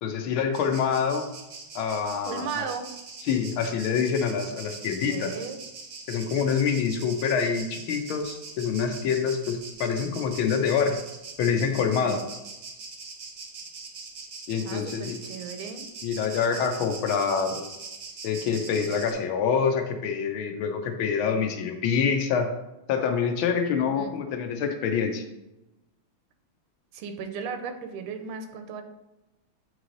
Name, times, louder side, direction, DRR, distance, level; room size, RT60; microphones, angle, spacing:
voice 1, 0.0-1.3 1.7-2.7 3.3-5.3 6.1-11.0 11.4-12.2 14.5-15.2 16.0-17.7 18.2-22.5 22.9-25.2, left 6 dB, 75° left, 6 dB, 1.5 m, -26 dB
sound 1, 0.5-19.1, right 4 dB, 60° right, 0.7 m, -42 dB
voice 2, 2.2-2.9 5.0-5.6 12.0-12.2 14.6-15.9 23.8-24.1 26.9-28.8, right 6 dB, 90° right, 7 dB, 1.6 m, -36 dB
8.2 x 3.2 x 3.8 m, 0.96 s
omnidirectional pair, 2.3 m